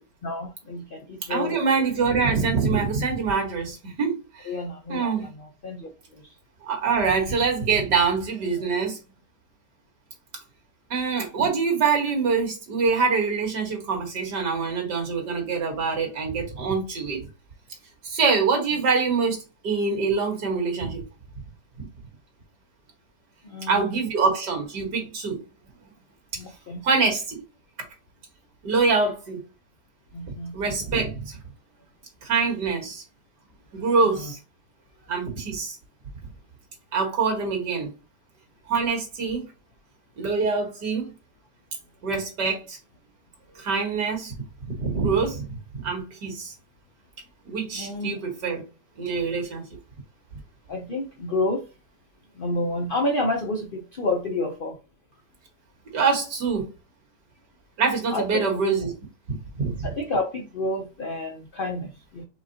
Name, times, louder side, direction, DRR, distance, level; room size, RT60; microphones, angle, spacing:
voice 1, 0.2-1.6 4.4-6.3 23.4-24.0 26.4-26.8 30.1-30.6 34.2-34.3 47.7-48.1 50.7-51.6 52.4-54.8 58.1-58.4 59.8-62.2, left 2 dB, 75° left, 0.5 m, -30 dB
voice 2, 1.3-4.5 4.9-5.3 6.6-9.0 10.9-17.2 18.0-21.0 21.8-21.9 23.7-25.4 26.8-27.4 28.6-29.4 30.5-31.4 32.2-33.0 33.7-34.4 35.1-35.8 36.9-37.9 38.7-39.4 40.2-41.1 42.0-42.8 43.6-44.3 44.7-45.5 45.7-46.5 47.5-48.6 49.0-49.6 55.9-56.7 57.8-58.9 59.5-59.9, right 4 dB, 75° right, 2.2 m, -25 dB
4.9 x 3.8 x 2.7 m
omnidirectional pair, 1.8 m